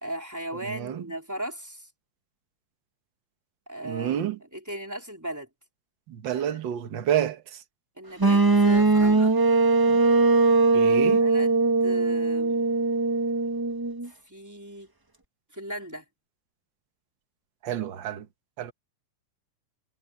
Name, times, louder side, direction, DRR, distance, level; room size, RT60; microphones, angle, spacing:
voice 1, 0.0-1.9 3.7-4.3 4.5-5.5 6.3-6.6 8.0-9.3 10.7-12.6 14.3-14.9 15.5-16.1, right 1 dB, 5° right, 3.9 m, -37 dB
voice 2, 0.6-1.0 3.8-4.4 6.1-7.6 9.9-10.0 10.7-11.2 17.6-18.3 18.6-18.7, right 10 dB, 55° right, 1.3 m, -29 dB
sound 1, 8.2-14.1, right 3 dB, 35° right, 0.3 m, -21 dB
omnidirectional pair, 3.5 m